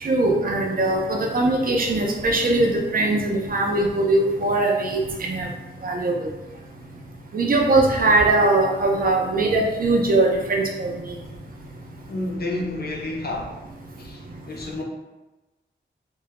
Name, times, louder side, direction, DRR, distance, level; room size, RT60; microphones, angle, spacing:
voice 1, 0.0-5.5 5.8-6.3 7.3-10.9, right 2 dB, 45° right, 1 dB, 0.4 m, -21 dB
voice 2, 12.1-13.7 14.0-14.8, left 2 dB, 50° left, 0 dB, 0.5 m, -30 dB
2.2 x 2.1 x 2.9 m, 1.1 s
wide cardioid pair, 110°, 20 cm